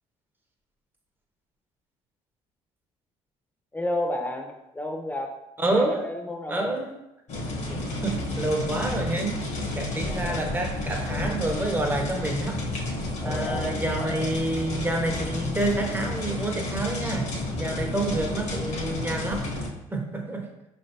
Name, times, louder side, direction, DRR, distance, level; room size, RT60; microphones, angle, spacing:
voice 1, 3.7-5.3 5.6-6.7 7.7-7.9 10.1-10.4 13.2-13.8, left 1 dB, 10° left, 2 dB, 0.8 m, -32 dB
voice 2, 5.6-6.0 6.5-6.9 8.0-9.4 9.7-12.6 13.2-19.5 19.9-20.5, right 2 dB, 15° right, 2 dB, 0.9 m, -28 dB
sound 1, 7.3-19.7, left 2 dB, 60° left, 1.2 m, -31 dB
5.0 x 3.3 x 2.8 m, 0.89 s
supercardioid pair, 80°, 14 cm